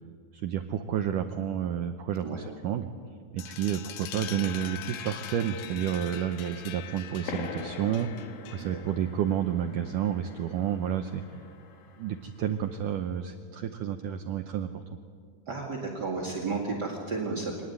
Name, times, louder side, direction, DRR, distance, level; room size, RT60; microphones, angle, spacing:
voice 1, 0.3-2.9 3.3-8.1 8.5-11.2 12.0-14.8, right 9 dB, 80° right, 7 dB, 1.8 m, -30 dB
sound 1, 3.4-8.9, left 10 dB, 80° left, 3.2 m, -42 dB
sound 2, 7.2-12.5, left 5 dB, 65° left, 3.3 m, -44 dB
voice 2, 15.5-17.6, right 3 dB, 35° right, -2 dB, 1.8 m, -33 dB
24.0 x 19.0 x 9.6 m, 2.1 s
omnidirectional pair, 4.9 m